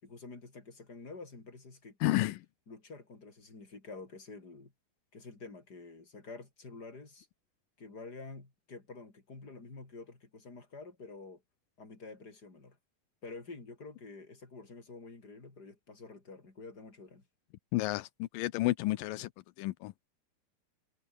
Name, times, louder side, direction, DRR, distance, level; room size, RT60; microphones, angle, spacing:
voice 1, 0.0-2.3 2.7-4.7 5.1-7.3 7.8-11.4 11.8-12.8 13.2-17.3, left 3 dB, 25° left, 4.9 m, -48 dB
voice 2, 2.0-2.4 17.7-19.3 19.6-20.1, left 18 dB, 85° left, 2.0 m, -31 dB
omnidirectional pair, 4.8 m